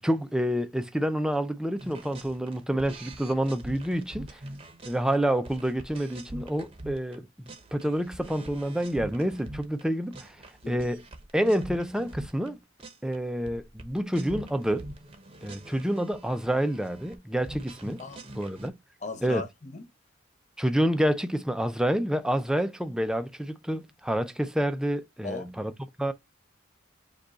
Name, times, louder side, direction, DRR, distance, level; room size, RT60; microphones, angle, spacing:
voice 1, 0.0-4.4 4.8-7.3 7.7-10.4 10.7-11.0 11.3-12.6 13.0-14.9 15.4-18.0 18.4-18.7 19.2-19.4 20.6-25.7 26.0-26.1, equal, 5° right, 0.4 m, -28 dB
sound 1, 1.8-7.2 7.5-9.8 10.1-12.5 12.8-13.2 13.5-18.7, right 1 dB, 30° right, 0.8 m, -44 dB
voice 2, 19.0-19.9 25.2-25.5, left 3 dB, 35° left, 0.7 m, -37 dB
5.2 x 2.3 x 3.9 m
head